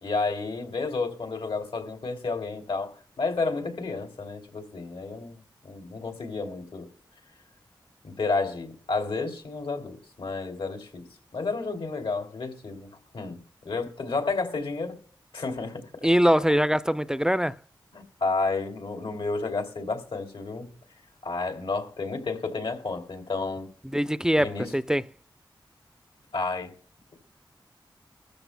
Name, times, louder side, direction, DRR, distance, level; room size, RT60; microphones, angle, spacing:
voice 1, 0.0-6.9 8.0-11.0 11.3-12.9 13.1-15.0 15.3-16.1 17.9-20.7 21.2-23.7 24.4-24.7 26.3-26.7, left 3 dB, 80° left, 2.8 m, -31 dB
voice 2, 16.0-17.6 23.8-25.0, equal, 5° right, 0.4 m, -23 dB
19.5 x 14.0 x 2.2 m
cardioid pair, 40°, 9 cm